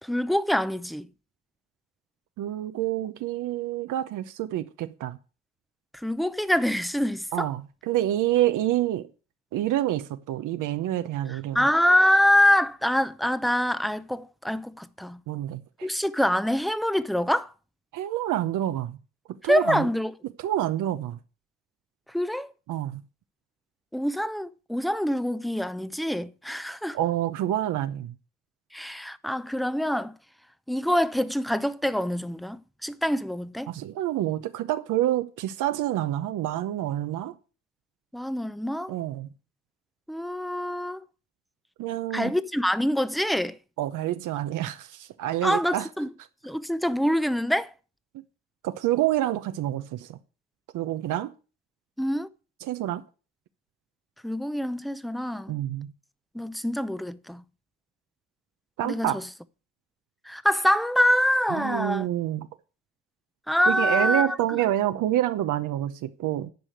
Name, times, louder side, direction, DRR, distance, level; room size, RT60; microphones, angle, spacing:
voice 1, 0.0-1.1 5.9-7.5 11.3-15.2 15.8-17.5 19.4-20.1 22.1-22.5 23.9-27.0 28.7-30.1 30.7-33.7 38.1-38.9 40.1-41.0 42.1-43.6 45.4-46.1 46.4-47.7 52.0-52.3 54.2-55.6 56.3-57.4 58.8-59.2 60.3-62.1 63.5-64.4, equal, ahead, 0.6 m, -25 dB
voice 2, 2.4-5.2 7.3-9.1 9.5-11.7 15.3-15.9 17.9-19.0 19.4-19.9 20.4-21.2 22.7-23.0 26.9-28.1 33.7-37.3 38.9-39.3 41.8-42.3 43.8-45.9 48.6-50.2 50.7-51.3 52.6-53.0 55.5-55.9 58.8-59.2 61.5-62.5 63.7-66.5, right 13 dB, 85° right, 0.8 m, -27 dB
10.5 x 4.9 x 7.9 m
cardioid pair, 90°, 30 cm